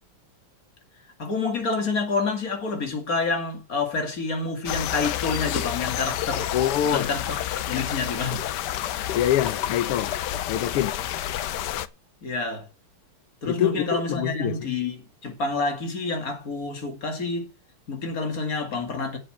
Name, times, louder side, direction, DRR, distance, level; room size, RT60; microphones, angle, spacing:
voice 1, 1.2-6.5 6.9-8.4 12.2-12.7 13.4-17.5 17.9-19.2, left 3 dB, 40° left, 2.6 m, -28 dB
sound 1, 4.7-11.9, left 12 dB, 70° left, 1.0 m, -29 dB
voice 2, 6.5-7.1 9.1-10.2 10.5-11.0 13.4-14.7, left 11 dB, 90° left, 1.7 m, -25 dB
7.7 x 7.4 x 7.7 m
omnidirectional pair, 2.4 m